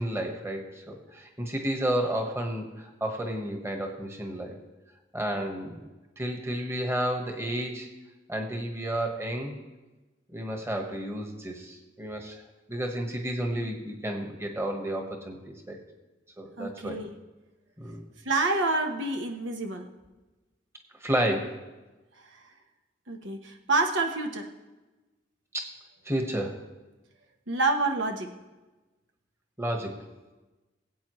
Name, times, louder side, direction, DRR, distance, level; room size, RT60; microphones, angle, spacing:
voice 1, 0.0-4.6 5.1-5.8 6.2-7.9 8.3-9.6 10.3-12.4 12.7-15.8 16.4-17.0 17.8-18.0 21.0-21.6 25.5-25.7 26.0-26.6 29.6-30.0, right 1 dB, 15° right, 3 dB, 1.3 m, -31 dB
voice 2, 16.6-17.1 18.2-19.9 22.2-22.4 23.1-24.5 27.5-28.4, right 3 dB, 85° right, 4 dB, 1.1 m, -28 dB
21.0 x 8.4 x 3.1 m, 1.1 s
head